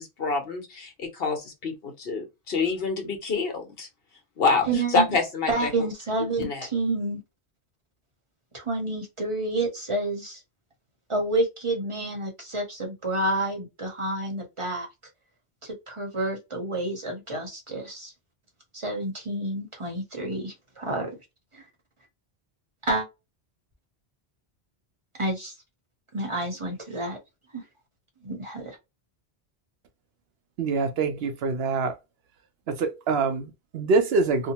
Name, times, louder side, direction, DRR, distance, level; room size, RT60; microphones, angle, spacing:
voice 1, 0.0-3.9 4.4-5.7 6.4-6.7, left 4 dB, 65° left, 1.1 m, -27 dB
voice 2, 4.6-5.2 5.5-7.2 8.5-10.4 11.1-14.9 15.6-18.1 18.7-21.1 21.5-21.6 22.8-23.1 25.2-25.5 26.1-27.2 27.5-27.6 28.2-28.8, right 2 dB, 30° right, 0.9 m, -29 dB
voice 3, 30.6-32.0 32.7-34.5, right 4 dB, 75° right, 0.8 m, -25 dB
2.8 x 2.0 x 2.8 m
omnidirectional pair, 1.1 m